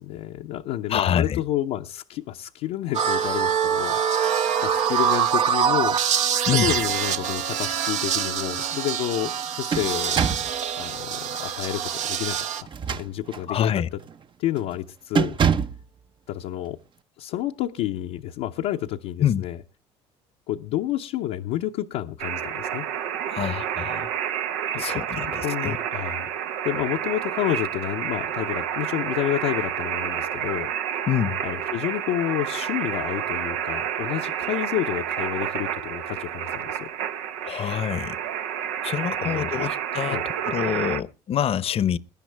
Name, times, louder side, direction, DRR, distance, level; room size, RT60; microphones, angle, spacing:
voice 1, 0.0-4.0 4.6-6.0 6.5-10.2 10.8-14.0 14.4-15.4 16.3-16.8 17.2-19.6 20.5-22.9 24.7-26.3 26.6-30.7 31.4-36.9 39.2-39.7 40.1-40.2, left 13 dB, 75° left, 0.8 m, -30 dB
voice 2, 0.9-1.4 6.5-6.7 13.5-13.9 19.2-19.4 23.3-24.1 24.8-25.8 31.1-31.4 37.4-38.2 38.8-40.2 40.5-42.0, left 9 dB, 45° left, 0.8 m, -26 dB
sound 1, 2.9-12.6, right 8 dB, 65° right, 1.0 m, -25 dB
sound 2, 6.5-7.2 7.7-7.8 9.2-10.6 12.6-13.5 14.0-14.2 14.6-14.8 15.2-15.9, right 7 dB, 35° right, 0.7 m, -26 dB
sound 3, 22.2-41.0, right 9 dB, 90° right, 0.9 m, -29 dB
21.5 x 10.0 x 3.4 m
supercardioid pair, 85°, 13 cm